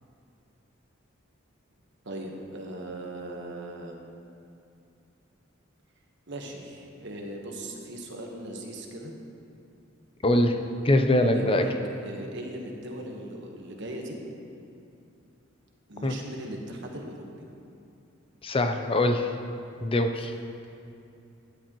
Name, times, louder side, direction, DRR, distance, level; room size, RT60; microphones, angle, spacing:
voice 1, 2.0-4.0 6.3-9.1 11.3-14.2 15.9-17.3, right 1 dB, 60° right, 1 dB, 1.2 m, -38 dB
voice 2, 10.2-10.5 10.8-11.6 16.0-16.1 18.4-19.3 19.8-20.3, left 1 dB, 25° left, 6 dB, 0.6 m, -23 dB
13.0 x 10.5 x 3.0 m, 2.6 s
head